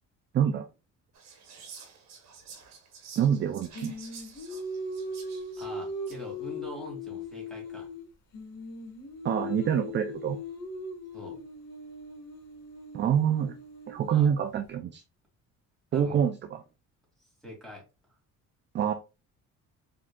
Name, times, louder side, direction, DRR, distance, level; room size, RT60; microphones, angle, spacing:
voice 1, 0.3-0.7 3.2-3.9 9.2-10.4 12.9-13.5 13.9-15.0 15.9-16.6 18.7-18.9, right 8 dB, 35° right, 0.4 m, -26 dB
Whispering, 1.1-6.3, right 6 dB, 60° right, 1.2 m, -50 dB
Singing, 3.7-8.1 8.3-14.3, left 2 dB, 60° left, 1.4 m, -39 dB
voice 2, 5.6-7.9 11.1-11.4 14.0-14.3 15.9-16.2 17.4-17.9, left 1 dB, ahead, 2.2 m, -43 dB
4.3 x 3.7 x 2.2 m
cardioid pair, 140°, 31 cm